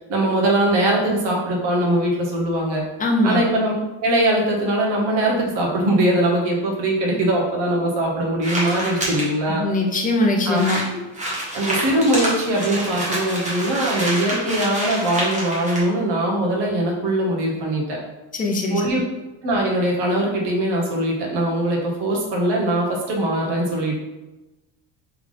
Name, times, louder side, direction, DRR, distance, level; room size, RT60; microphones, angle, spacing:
voice 1, 0.1-2.9 3.2-3.7 4.0-9.6 10.5-10.6 11.5-18.0 18.7-19.0 19.4-24.0, right 1 dB, 55° right, -1 dB, 1.2 m, -21 dB
voice 2, 3.0-3.4 9.5-10.8 18.3-18.8, left 2 dB, 20° left, 0 dB, 0.5 m, -21 dB
sound 1, 8.4-9.3 9.9-10.0 10.2-10.3 10.5-15.8, right 1 dB, 15° right, 1.1 m, -27 dB
3.5 x 3.4 x 3.7 m, 1.1 s
cardioid pair, 150°, 49 cm